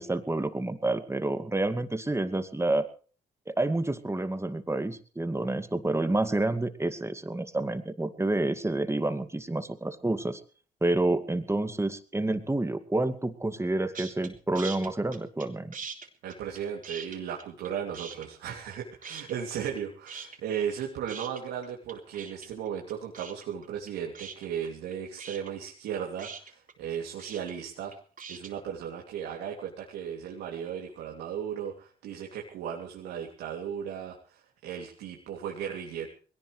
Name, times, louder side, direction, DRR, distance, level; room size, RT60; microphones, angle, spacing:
voice 1, 0.0-2.9 3.5-10.4 10.8-15.7, right 2 dB, 15° right, 9 dB, 2.2 m, -29 dB
sound 1, 13.9-14.3 14.5-15.5 15.7-17.7 17.9-18.8 19.0-19.8 20.1-28.5, right 6 dB, 55° right, 3.7 m, -42 dB
voice 2, 16.2-27.9 28.3-36.1, right 8 dB, 80° right, 0 dB, 2.9 m, -36 dB
21.5 x 18.0 x 3.3 m, 0.42 s
supercardioid pair, 55°, 17 cm